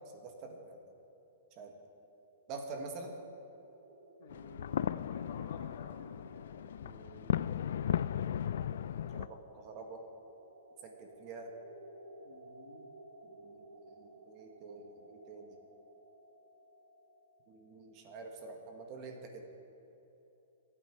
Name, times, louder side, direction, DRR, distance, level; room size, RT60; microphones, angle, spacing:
voice 1, 0.1-0.8 1.6-1.8 2.5-3.2 6.8-7.8 9.0-10.0 10.8-11.5 13.3-15.6 17.5-19.5, right 3 dB, 30° right, 3 dB, 1.4 m, -47 dB
sound 1, 2.3-19.1, right 2 dB, 75° right, 1.8 m, -58 dB
voice 2, 4.2-6.1 12.2-12.9, left 5 dB, 50° left, 3 dB, 1.7 m, -53 dB
sound 2, 4.3-9.3, left 9 dB, 65° left, 0.3 m, -36 dB
26.0 x 8.7 x 4.6 m, 2.9 s
hypercardioid pair, 165°, 0 cm